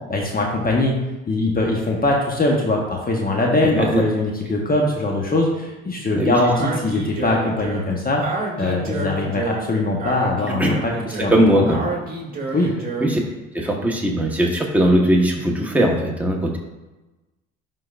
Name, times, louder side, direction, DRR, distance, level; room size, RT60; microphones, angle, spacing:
voice 1, 0.1-1.0 1.3-8.2 8.6-11.6 12.5-12.7, left 2 dB, 30° left, -1 dB, 1.2 m, -21 dB
voice 2, 3.6-4.0 6.2-6.3 10.6-10.7 11.3-11.8 13.0-13.2 13.5-16.6, right 1 dB, 5° right, -1 dB, 1.4 m, -19 dB
Speech, 6.5-13.2, right 3 dB, 30° right, 2.0 m, -29 dB
11.0 x 3.8 x 2.6 m, 1.1 s
supercardioid pair, 75°, 32 cm